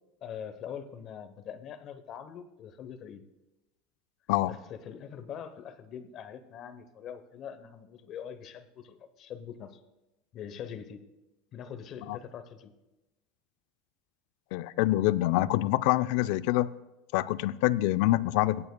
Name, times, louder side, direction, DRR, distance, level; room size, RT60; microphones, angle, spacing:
voice 1, 0.2-3.2 4.5-4.6 4.8-9.8 10.3-11.0 11.5-12.7, left 8 dB, 45° left, 9 dB, 0.8 m, -43 dB
voice 2, 14.5-16.7 17.1-18.7, left 16 dB, 70° left, 14 dB, 0.3 m, -26 dB
24.5 x 9.0 x 2.2 m, 1.0 s
supercardioid pair, 135°, 0 cm